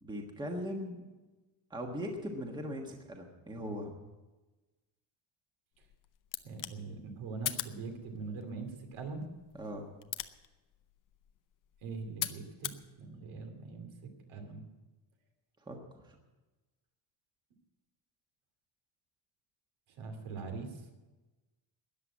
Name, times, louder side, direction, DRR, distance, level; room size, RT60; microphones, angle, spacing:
voice 1, 0.0-1.0 1.7-3.9 9.5-9.9 15.7-16.2, equal, 10° right, 2 dB, 1.4 m, -40 dB
sound 1, 5.7-12.8, left 12 dB, 40° left, 0.6 m, -43 dB
voice 2, 6.4-9.3 11.8-12.7 13.0-13.9 14.3-14.7 20.0-20.9, right 4 dB, 65° right, 5 dB, 2.7 m, -42 dB
13.5 x 9.9 x 8.6 m, 1.2 s
cardioid pair, 180°, 49 cm